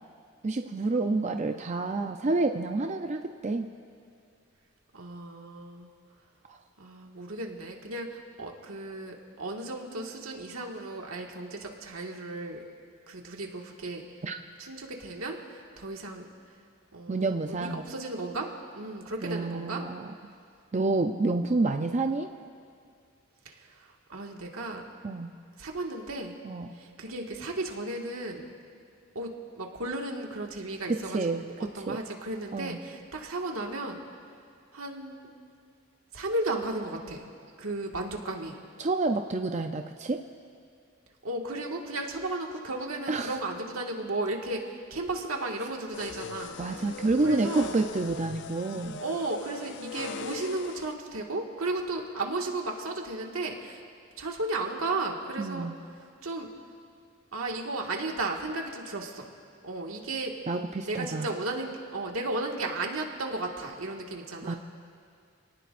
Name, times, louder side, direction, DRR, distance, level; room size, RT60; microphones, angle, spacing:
voice 1, 0.4-3.7 6.5-6.6 14.2-14.4 17.1-17.8 19.2-20.1 20.7-22.3 25.0-25.3 26.4-26.7 30.9-31.4 31.8-32.0 32.5-32.8 38.8-40.2 43.1-43.4 46.6-49.0 55.4-55.7 60.5-61.3 64.4-64.5, right 3 dB, 35° right, 5 dB, 0.5 m, -29 dB
voice 2, 4.9-5.9 6.8-12.6 13.1-14.0 14.6-16.3 16.9-18.5 18.7-19.8 23.5-24.8 25.6-26.4 26.7-28.5 29.2-34.0 34.7-35.3 36.1-37.3 37.6-38.6 41.2-44.6 44.9-46.9 47.2-47.7 49.0-53.8 54.2-55.7 56.2-56.5 57.3-59.3 59.6-60.3 60.9-64.6, right 2 dB, 80° right, 1 dB, 1.8 m, -34 dB
sound 1, 45.9-50.9, left 5 dB, 55° left, 0.5 m, -41 dB
28.0 x 18.5 x 2.5 m, 2.3 s
head